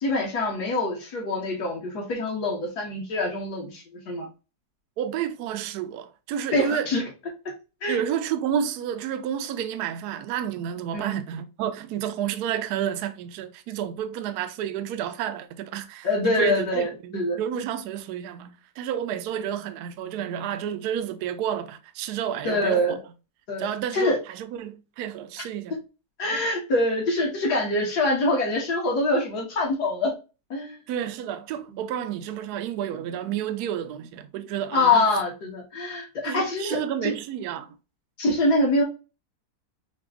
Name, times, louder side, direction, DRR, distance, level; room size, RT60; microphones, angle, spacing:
voice 1, 0.0-4.3 6.5-7.0 7.8-8.0 10.9-11.2 16.0-17.4 22.4-23.0 23.5-23.7 23.9-24.2 26.2-30.1 30.5-30.8 34.7-37.1 38.2-38.8, left 2 dB, 65° left, 2.2 m, -25 dB
voice 2, 5.0-6.9 7.9-23.0 23.6-25.8 30.9-35.1 36.2-37.7, right 9 dB, 70° right, 1.1 m, -30 dB
5.9 x 2.3 x 3.7 m
omnidirectional pair, 1.9 m